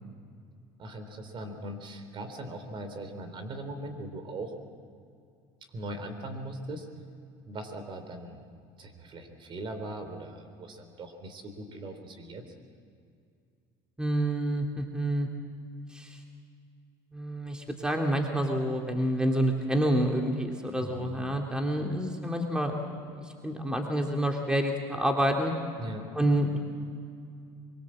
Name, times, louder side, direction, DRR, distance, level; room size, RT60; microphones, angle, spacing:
voice 1, 0.8-4.5 5.7-6.9 7.4-8.4 8.8-12.4 20.8-21.2 25.8-26.1, right 1 dB, 45° right, 7 dB, 3.6 m, -40 dB
voice 2, 14.0-15.3 15.9-16.2 17.1-25.5 26.1-26.6, right 1 dB, 5° right, 2 dB, 2.6 m, -28 dB
23.5 x 23.0 x 7.6 m, 2.4 s
supercardioid pair, 95°, 12 cm